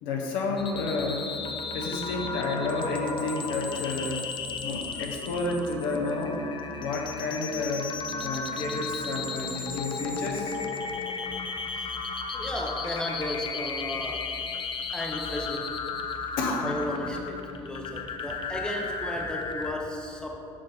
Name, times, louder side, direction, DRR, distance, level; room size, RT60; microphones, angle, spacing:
voice 1, 0.0-1.3 1.7-4.2 4.6-6.5 6.8-7.9 8.2-10.6 16.4-16.7, left 3 dB, 60° left, 0 dB, 1.0 m, -30 dB
sound 1, 0.6-19.7, left 4 dB, 30° left, 0.6 m, -34 dB
voice 2, 12.3-14.3 14.9-15.7 16.6-20.3, left 1 dB, 5° left, 1 dB, 0.8 m, -34 dB
6.7 x 5.4 x 4.0 m, 2.6 s
figure-of-eight pair, 60°, 16 cm